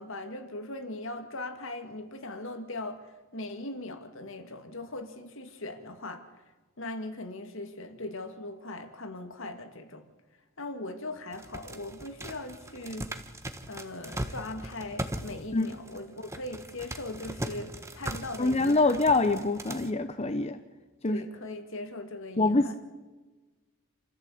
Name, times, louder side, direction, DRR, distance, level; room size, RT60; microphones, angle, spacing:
voice 1, 0.0-6.3 6.8-10.0 10.6-13.1 13.7-19.0 21.0-22.8, left 2 dB, 65° left, 2.3 m, -39 dB
sound 1, 11.3-19.9, right 1 dB, 15° right, 1.4 m, -39 dB
voice 2, 18.4-20.6 21.0-21.2 22.4-22.8, left 2 dB, 30° left, 0.9 m, -25 dB
28.5 x 14.5 x 8.6 m
head